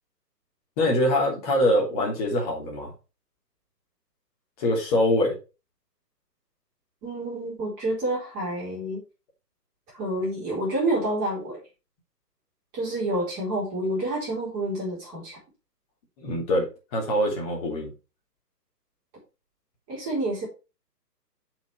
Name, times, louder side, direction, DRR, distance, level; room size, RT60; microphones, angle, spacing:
voice 1, 0.8-2.9 4.6-5.4 16.2-17.9, left 1 dB, 20° left, -2 dB, 3.0 m, -24 dB
voice 2, 7.0-9.0 9.9-11.6 12.7-15.4 19.9-20.5, right 1 dB, 15° right, -5 dB, 4.1 m, -28 dB
7.1 x 6.1 x 4.6 m, 0.30 s
figure-of-eight pair, 135°, 49 cm